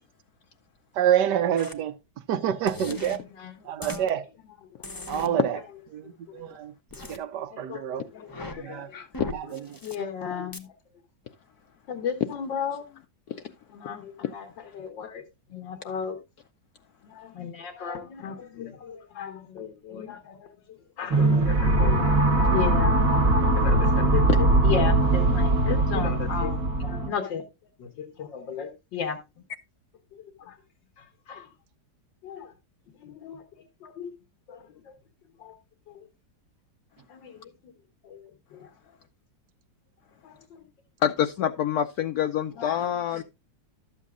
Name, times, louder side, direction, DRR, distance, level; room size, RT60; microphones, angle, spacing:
voice 1, 0.9-2.0 2.3-3.2 3.6-4.3 5.1-5.6 5.9-6.7 7.1-8.0 8.6-8.9 9.3-9.8, right 10 dB, 70° right, 1.3 m, -27 dB
sound 1, 1.6-1.7 2.7-3.2 3.8-4.0 4.8-5.3 6.9-7.2 8.2-8.6 9.1-10.0 10.5-10.6, left 2 dB, 15° left, 0.8 m, -38 dB
voice 2, 3.4-3.7 4.9-5.6 6.3-6.5 7.0-7.1 7.5-8.9 9.8-10.7 11.9-12.8 13.7-15.2 15.5-16.2 17.0-27.4 27.8-29.2 30.1-30.6 31.0-31.5 32.2-32.5 33.0-34.1 34.5-34.9 35.4-35.6 35.9-36.1 37.1-37.7 38.0-38.7 40.2-40.6 42.5-43.2, left 7 dB, 85° left, 1.9 m, -35 dB
voice 3, 8.3-9.1 41.0-43.2, left 9 dB, 70° left, 1.0 m, -27 dB
sound 2, 21.1-27.1, right 2 dB, 50° right, 1.7 m, -21 dB
12.5 x 8.2 x 2.4 m
omnidirectional pair, 1.9 m